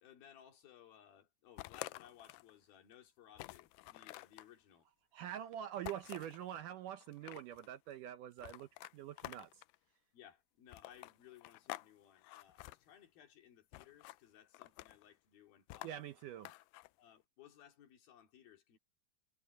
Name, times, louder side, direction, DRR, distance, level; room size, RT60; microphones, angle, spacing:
voice 1, 0.0-4.9 10.1-15.9 17.0-18.8, left 10 dB, 70° left, 4.2 m, -61 dB
sound 1, 1.6-2.5 2.9-3.0 3.4-4.5 5.8-6.4 7.0-7.7 8.4-9.8 10.7-11.9 12.2-12.8 13.7-14.2 14.5-15.1 15.7-16.9, left 19 dB, 90° left, 1.9 m, -49 dB
voice 2, 5.1-9.6 15.8-16.5, right 11 dB, 75° right, 2.0 m, -45 dB
omnidirectional pair, 4.4 m